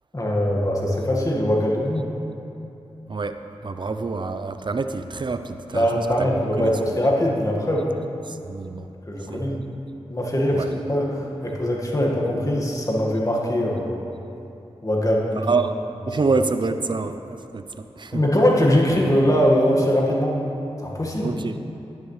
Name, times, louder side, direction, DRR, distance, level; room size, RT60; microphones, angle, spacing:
voice 1, 0.1-2.1 5.7-7.9 9.1-9.6 10.1-14.0 14.8-15.5 18.1-20.4 20.8-21.4, equal, 30° left, -2 dB, 1.7 m, -22 dB
voice 2, 3.6-5.9 6.2-6.3 6.6-6.7 8.5-8.9 9.3-9.6 10.5-10.7 15.4-15.8 16.1-17.6 18.0-18.2 21.2-21.6, right 4 dB, 45° right, 9 dB, 0.5 m, -26 dB
10.5 x 9.3 x 3.2 m, 2.8 s
cardioid pair, 45°, 11 cm